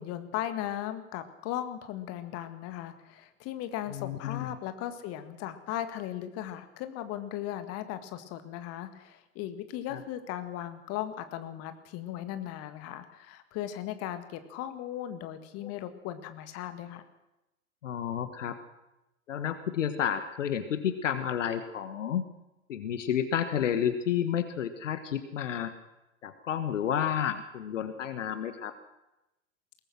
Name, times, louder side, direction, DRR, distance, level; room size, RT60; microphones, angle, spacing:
voice 1, 0.0-17.0, left 12 dB, 35° left, 10 dB, 1.9 m, -37 dB
voice 2, 3.9-4.5 9.9-10.0 15.6-15.7 17.8-18.6 19.3-22.3 22.7-25.7 26.2-28.8, left 9 dB, 60° left, 10 dB, 1.4 m, -31 dB
22.0 x 19.0 x 6.2 m, 0.95 s
figure-of-eight pair, 95°, 42 cm